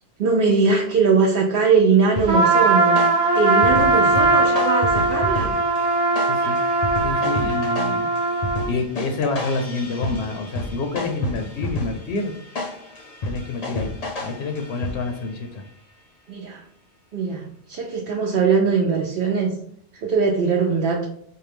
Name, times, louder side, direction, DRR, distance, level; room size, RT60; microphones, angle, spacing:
voice 1, 0.2-3.0 3.4-5.5 7.3-7.5 16.3-16.6 17.1-19.5 19.9-21.1, right 5 dB, 60° right, -1 dB, 0.7 m, -21 dB
sound 1, 2.2-15.3, left 2 dB, 45° left, 0.6 m, -32 dB
Trumpet, 2.3-8.7, right 2 dB, 90° right, 1.1 m, -19 dB
voice 2, 3.7-4.4 6.2-6.6 7.0-8.1 8.7-12.3 13.2-13.9 14.2-15.6, left 3 dB, 75° left, 5 dB, 0.8 m, -28 dB
4.4 x 2.2 x 3.3 m, 0.66 s
omnidirectional pair, 1.1 m